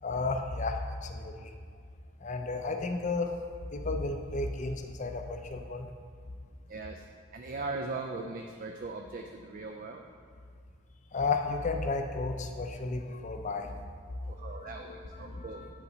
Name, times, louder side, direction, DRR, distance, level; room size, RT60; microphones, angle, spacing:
voice 1, 0.0-1.5 2.2-3.3 3.7-5.9 11.1-13.7 14.4-15.7, left 3 dB, 35° left, 5 dB, 0.4 m, -33 dB
voice 2, 6.7-7.1 7.3-10.0 14.3-14.9 15.2-15.6, right 3 dB, 40° right, 4 dB, 0.3 m, -39 dB
8.3 x 5.7 x 3.9 m, 2.1 s
head